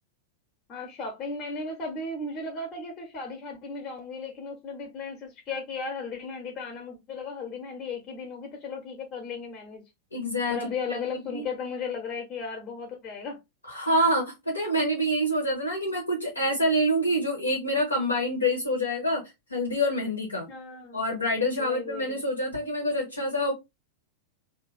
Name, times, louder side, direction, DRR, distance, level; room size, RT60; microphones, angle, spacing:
voice 1, 0.7-9.8 10.5-13.4 20.5-21.0 21.6-22.2, left 4 dB, 30° left, 0.8 m, -36 dB
voice 2, 10.1-10.6 10.9-11.0 11.3-11.5 13.7-19.2 19.5-20.5 20.9-23.5, equal, 80° left, 0.9 m, -26 dB
2.7 x 2.4 x 3.2 m
figure-of-eight pair, 90°, 0 cm